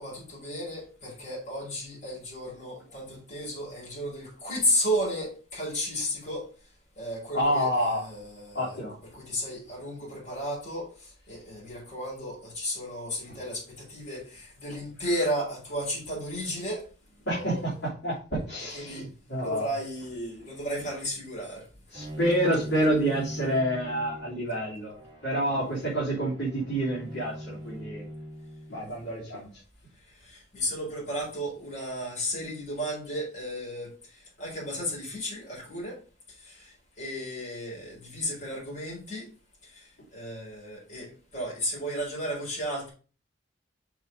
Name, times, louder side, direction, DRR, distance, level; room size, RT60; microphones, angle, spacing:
voice 1, 0.0-6.5 7.0-8.8 9.1-16.9 18.7-19.1 19.4-21.7 30.0-36.0 36.3-39.3 39.6-42.9, equal, 45° left, -5 dB, 4.2 m, -33 dB
voice 2, 7.3-8.1 8.5-9.0 13.3-13.4 17.2-19.7 21.9-28.0 28.7-29.6, right 1 dB, 65° left, -8 dB, 3.1 m, -28 dB
Bowed string instrument, 21.9-29.0, equal, 25° right, 2.1 m, -40 dB
6.1 x 4.0 x 5.2 m, 0.36 s
head